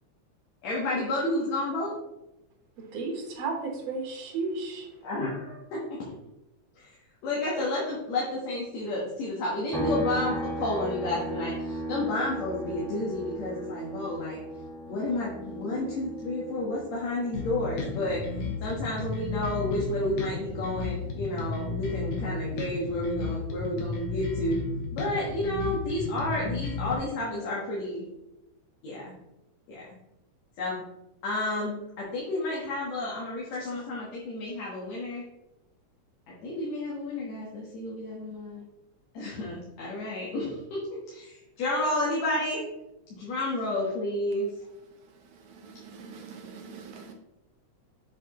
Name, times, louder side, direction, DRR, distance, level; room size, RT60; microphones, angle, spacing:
voice 1, 0.6-1.9 5.0-6.0 6.7-7.0 7.2-14.4 14.9-18.2 18.6-24.6 24.9-28.1 28.8-29.1 29.7-30.0 30.6-30.8 31.2-35.2 36.3-38.7 39.1-40.8 41.1-42.6 43.1-44.5, left 1 dB, 65° left, -5 dB, 2.6 m, -31 dB
voice 2, 2.8-5.0, right 3 dB, 60° right, 1 dB, 2.4 m, -33 dB
sound 1, 9.7-23.3 23.6-25.8, right 1 dB, ahead, 0.5 m, -38 dB
sound 2, 17.3-26.9, left 4 dB, 85° left, 2.8 m, -33 dB
voice 3, 44.8-47.1, right 5 dB, 75° right, 3 dB, 2.3 m, -46 dB
7.5 x 6.8 x 3.1 m, 0.94 s
omnidirectional pair, 3.5 m